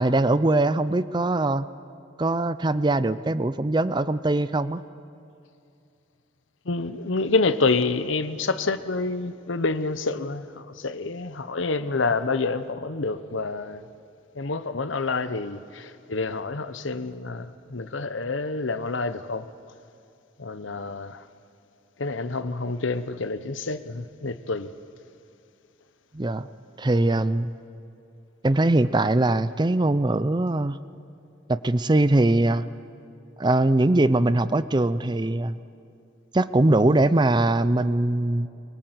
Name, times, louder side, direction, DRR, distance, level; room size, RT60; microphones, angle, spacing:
voice 1, 0.0-1.7 2.2-4.8 26.1-26.5 26.8-27.5 28.4-30.8 31.5-32.7 33.4-35.6 36.3-38.5, right 2 dB, 20° right, 0.5 m, -21 dB
voice 2, 6.7-13.8 14.4-19.5 20.4-21.2 22.0-24.7, left 3 dB, 75° left, 0.9 m, -28 dB
23.5 x 22.5 x 8.0 m
head